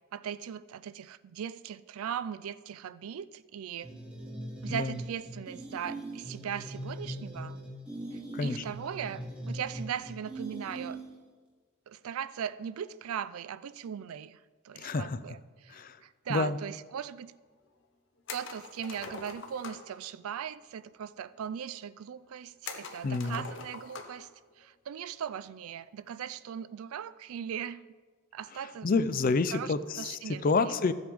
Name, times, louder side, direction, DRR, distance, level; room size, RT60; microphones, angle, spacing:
voice 1, 0.1-3.9 4.6-7.6 8.1-11.0 11.9-14.4 14.6-15.4 15.6-17.3 18.3-24.3 24.6-27.8 28.3-28.9 29.5-30.8, right 8 dB, 85° right, 16 dB, 0.4 m, -39 dB
sound 1, 3.8-11.3, right 1 dB, 5° right, 1.1 m, -41 dB
voice 2, 8.3-8.6 14.8-15.2 15.7-16.0 16.3-16.6 23.0-23.4 28.8-30.9, left 4 dB, 40° left, 13 dB, 0.4 m, -29 dB
sound 2, 18.3-19.9 22.6-24.3 24.6-24.7 26.3-26.6, left 4 dB, 60° left, 0.9 m, -43 dB
14.5 x 7.9 x 3.5 m, 1.5 s
head